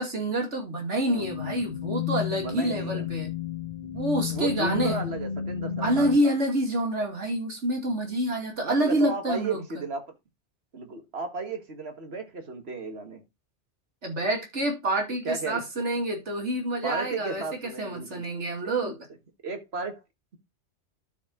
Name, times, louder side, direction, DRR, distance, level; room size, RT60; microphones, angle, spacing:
voice 1, 0.0-3.3 3.8-5.1 5.8-9.6 14.0-19.0, right 1 dB, 85° right, 2.9 m, -27 dB
sound 1, 1.2-6.2, left 9 dB, 45° left, 1.7 m, -32 dB
voice 2, 2.4-3.1 4.3-6.4 8.6-10.1 10.7-13.2 15.2-15.6 16.8-18.2 18.6-18.9 19.4-20.0, right 3 dB, 65° right, 2.0 m, -34 dB
12.0 x 4.6 x 3.8 m
omnidirectional pair, 1.2 m